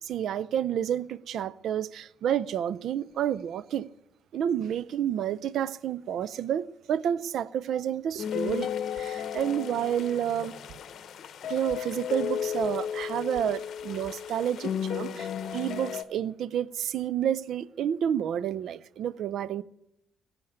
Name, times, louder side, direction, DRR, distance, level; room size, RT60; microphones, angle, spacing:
voice 1, 0.0-3.9 4.3-8.7 8.9-10.5 11.5-19.6, right 9 dB, 70° right, 0.5 m, -30 dB
sound 1, 8.2-16.0, left 8 dB, 65° left, 0.9 m, -34 dB
17.5 x 7.9 x 8.8 m
cardioid pair, 85°, 0 cm